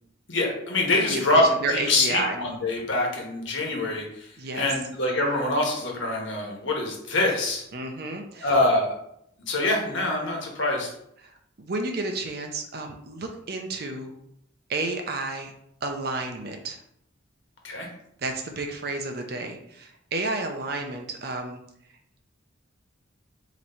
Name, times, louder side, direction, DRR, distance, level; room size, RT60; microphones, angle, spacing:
voice 1, 0.3-4.3 4.5-7.6 8.4-8.9 9.5-10.9 17.6-17.9, left 2 dB, 65° left, 0 dB, 1.2 m, -24 dB
voice 2, 1.1-2.4 4.4-4.7 7.7-8.5 11.6-14.1 14.7-15.5 15.8-16.8 18.2-21.6, right 2 dB, 50° right, 3 dB, 0.6 m, -31 dB
3.9 x 3.0 x 4.3 m, 0.74 s
head